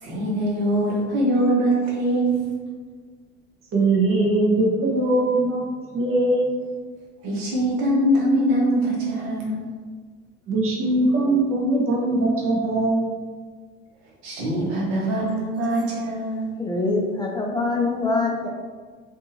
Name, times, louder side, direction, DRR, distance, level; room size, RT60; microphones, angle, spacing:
voice 1, 0.0-2.4 7.2-9.7 14.2-16.5, right 1 dB, 80° right, -4 dB, 1.0 m, -23 dB
voice 2, 3.7-5.6 5.9-6.5 10.5-13.1, right 2 dB, 45° right, -1 dB, 0.9 m, -21 dB
voice 3, 16.6-18.5, left 3 dB, 15° left, -1 dB, 0.3 m, -24 dB
2.7 x 2.5 x 2.7 m, 1.5 s
supercardioid pair, 90°, 31 cm